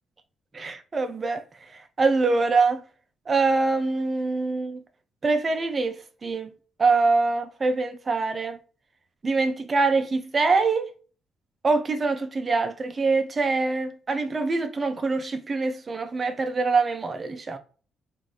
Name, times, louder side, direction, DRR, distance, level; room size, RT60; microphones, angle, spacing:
voice 1, 0.5-1.4 1.7-2.8 3.3-4.8 5.2-6.0 6.2-6.5 6.8-8.6 9.2-10.9 11.6-17.6, right 3 dB, 40° right, 0.4 m, -24 dB
3.7 x 2.5 x 3.1 m
supercardioid pair, 55°, 0 cm